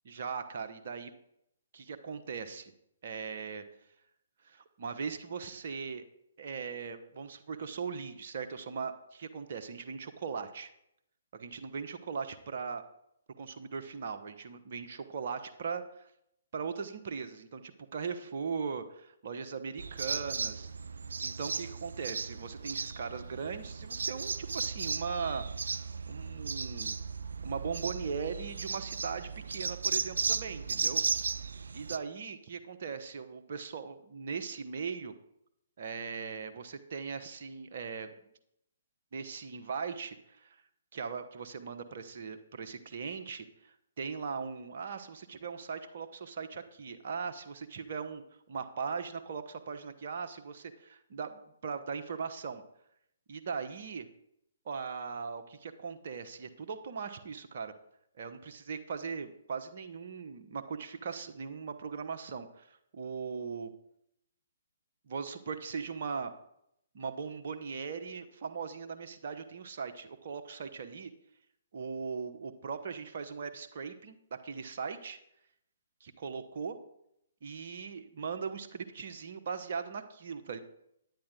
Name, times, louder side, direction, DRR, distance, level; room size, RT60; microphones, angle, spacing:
voice 1, 0.0-1.1 1.7-2.7 3.0-3.6 4.4-6.0 6.4-10.7 11.3-12.8 13.4-16.1 16.5-20.7 21.2-27.0 27.4-31.0 31.7-35.1 35.8-38.1 39.1-40.6 40.9-48.2 48.5-52.6 53.3-54.1 54.6-57.7 58.2-63.7 65.1-66.3 66.9-71.1 71.7-75.2 76.0-76.8 77.4-80.6, right 5 dB, 50° right, 7 dB, 1.1 m, -39 dB
sound 1, 19.8-32.0, right 5 dB, 65° right, 0.4 m, -35 dB
10.5 x 9.9 x 3.8 m, 0.75 s
figure-of-eight pair, 130°, 0 cm